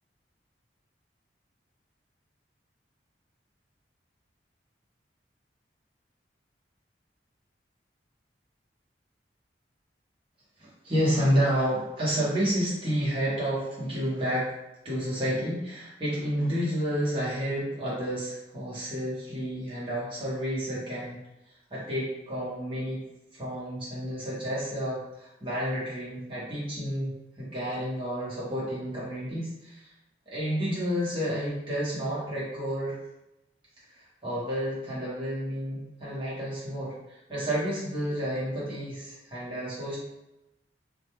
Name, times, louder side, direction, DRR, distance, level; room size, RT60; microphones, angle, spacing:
voice 1, 10.6-14.5 14.8-21.2 21.7-23.0 23.3-29.9 30.3-32.9 33.9-40.0, equal, 30° right, -8 dB, 1.0 m, -30 dB
2.3 x 2.2 x 3.0 m, 0.92 s
head